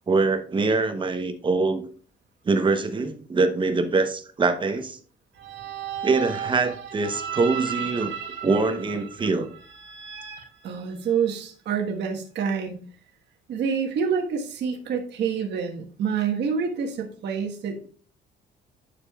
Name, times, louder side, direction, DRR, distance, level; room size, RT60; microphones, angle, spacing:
voice 1, 0.1-1.8 2.5-5.0 6.0-8.1 8.4-9.5, right 3 dB, 25° right, 7 dB, 0.9 m, -23 dB
sound 1, 5.4-11.4, right 8 dB, 90° right, 2.8 m, -35 dB
voice 2, 10.6-12.8 13.5-17.9, right 6 dB, 65° right, 1 dB, 1.4 m, -27 dB
10.0 x 6.7 x 2.3 m, 0.43 s
cardioid pair, 150°, 19 cm